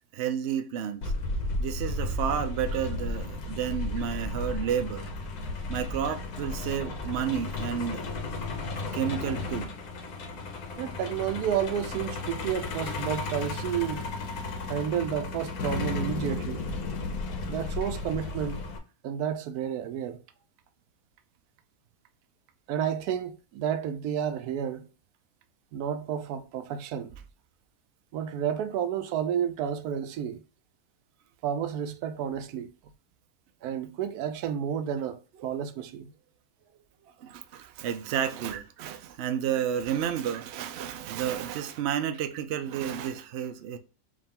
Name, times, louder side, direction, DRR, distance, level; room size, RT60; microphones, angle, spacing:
voice 1, 0.1-1.1 1.6-5.1 5.7-8.1 8.9-9.7 37.2-43.8, right 9 dB, 65° right, 0.7 m, -31 dB
Truck, 1.0-18.8, left 3 dB, 90° left, 1.3 m, -34 dB
voice 2, 10.8-14.1 14.7-16.6 17.5-18.6 19.0-20.2 22.7-24.8 25.7-27.1 28.1-30.4 31.4-32.7 33.6-36.1 39.5-39.6, right 9 dB, 85° right, 1.1 m, -31 dB
5.0 x 2.5 x 3.6 m
omnidirectional pair, 1.6 m